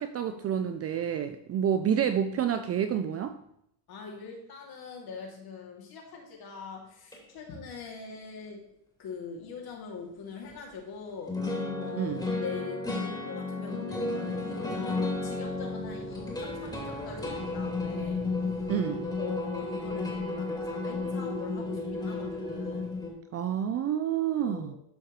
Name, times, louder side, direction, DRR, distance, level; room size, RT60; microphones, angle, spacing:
voice 1, 0.0-3.3 12.0-12.2 18.7-19.1 23.3-24.7, right 9 dB, 35° right, 9 dB, 0.4 m, -29 dB
voice 2, 3.9-8.6 9.0-18.2 19.2-22.9 24.4-24.8, left 5 dB, 50° left, -1 dB, 2.5 m, -42 dB
sound 1, 7.1-7.2 10.5-10.6 11.3-23.1, left 3 dB, 10° left, 2.7 m, -33 dB
12.5 x 4.5 x 3.1 m, 0.75 s
cardioid pair, 120°, 48 cm